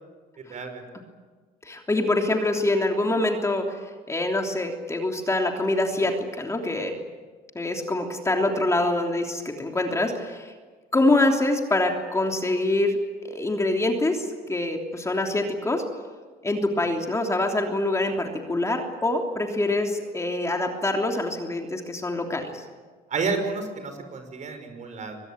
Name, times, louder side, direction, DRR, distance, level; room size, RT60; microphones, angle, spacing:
voice 1, 0.5-0.8 23.1-25.2, right 4 dB, 45° right, 7 dB, 5.8 m, -30 dB
voice 2, 1.6-6.9 7.5-10.5 10.9-13.0 13.2-15.8 16.4-22.6, left 2 dB, 15° left, 2 dB, 3.2 m, -25 dB
24.0 x 20.5 x 9.0 m, 1.4 s
cardioid pair, 110°, 17 cm